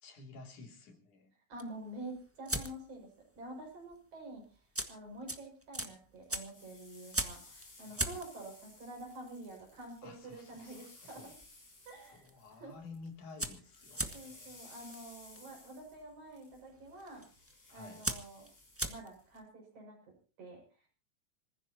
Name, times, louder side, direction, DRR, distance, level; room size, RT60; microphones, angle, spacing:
voice 1, 0.0-1.3 7.9-8.2 10.0-11.3 12.0-14.6 17.7-18.1, left 3 dB, 75° left, 4 dB, 4.4 m, -52 dB
sound 1, 1.5-3.1 3.3-3.7 3.9-4.0 4.5-11.5 11.8-12.3 12.6-12.7 12.9-19.4, right 1 dB, 15° right, 0.5 m, -40 dB
voice 2, 1.5-3.1 3.4-4.4 4.9-11.4 11.9-12.3 12.6-12.7 14.1-17.2 17.7-18.5 18.8-20.0 20.4-20.6, right 1 dB, 65° right, 0 dB, 7.9 m, -48 dB
sound 2, 6.2-13.0 13.3-19.4, left 2 dB, 45° left, 7.7 m, -58 dB
27.0 x 15.5 x 2.9 m, 0.38 s
omnidirectional pair, 3.6 m